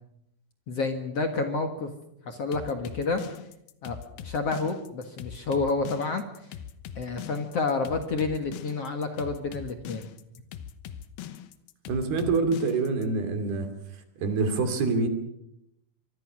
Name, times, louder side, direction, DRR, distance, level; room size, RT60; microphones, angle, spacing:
voice 1, 0.7-1.9 2.3-3.2 3.8-4.0 4.2-6.3 7.0-10.0, left 3 dB, 50° left, 6 dB, 2.1 m, -29 dB
sound 1, 2.5-13.1, left 9 dB, 75° left, 2.9 m, -41 dB
voice 2, 11.9-13.7 14.2-15.1, right 3 dB, 75° right, 7 dB, 4.6 m, -26 dB
24.5 x 24.5 x 6.3 m, 0.79 s
omnidirectional pair, 4.4 m